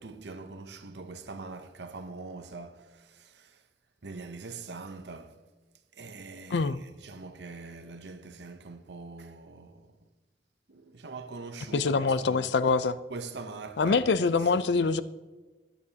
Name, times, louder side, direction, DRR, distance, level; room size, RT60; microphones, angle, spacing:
voice 1, 0.0-3.6 4.0-5.4 6.0-6.7 7.0-9.9 10.7-12.5 13.1-14.3 14.5-14.7, right 3 dB, 80° right, 0.8 m, -43 dB
voice 2, 11.7-13.0 13.8-15.0, left 4 dB, 85° left, 0.5 m, -25 dB
15.5 x 11.0 x 2.9 m
head